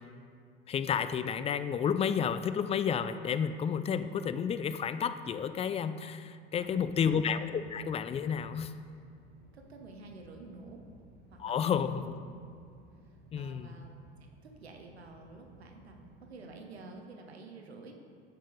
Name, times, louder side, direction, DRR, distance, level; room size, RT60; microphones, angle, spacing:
voice 1, 0.7-8.8 11.4-12.2 13.3-13.7, left 7 dB, 20° left, 12 dB, 0.3 m, -31 dB
voice 2, 6.5-7.2 9.5-10.8 11.3-12.1 13.0-13.9 14.4-17.9, right 3 dB, 85° right, 3 dB, 0.9 m, -50 dB
sound 1, 6.6-16.2, right 1 dB, 30° right, 1.7 m, -59 dB
9.0 x 4.6 x 4.9 m, 2.2 s
figure-of-eight pair, 65°, 31 cm